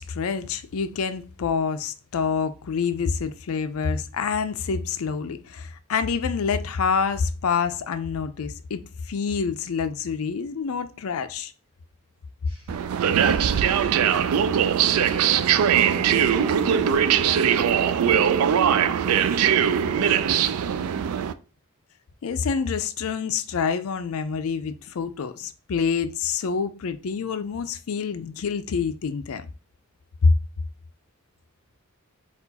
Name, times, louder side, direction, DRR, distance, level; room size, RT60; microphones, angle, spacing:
voice 1, 0.0-11.5 13.2-13.5 22.2-29.5 30.2-30.3, left 5 dB, 75° left, 0.4 m, -27 dB
sound 1, 12.7-21.3, right 8 dB, 80° right, 0.3 m, -21 dB
voice 2, 14.4-21.1, equal, 25° right, 1.8 m, -40 dB
4.4 x 2.4 x 4.0 m
head